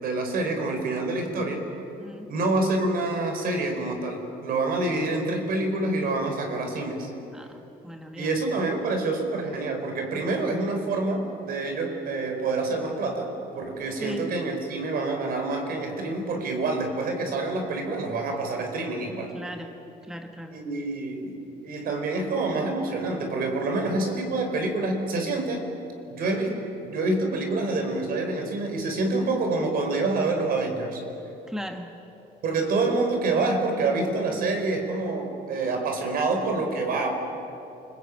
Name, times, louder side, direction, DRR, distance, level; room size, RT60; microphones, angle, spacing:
voice 1, 0.0-1.6 2.3-7.1 8.2-19.4 20.5-21.4 21.6-25.7 26.1-26.5 26.8-31.0 32.4-37.1, right 2 dB, 60° right, 4 dB, 5.4 m, -27 dB
voice 2, 2.0-2.3 7.3-8.4 13.9-14.3 19.3-20.6 31.5-32.0, equal, 5° right, 5 dB, 1.5 m, -38 dB
28.5 x 21.5 x 9.0 m, 3.0 s
cardioid pair, 110°, 17 cm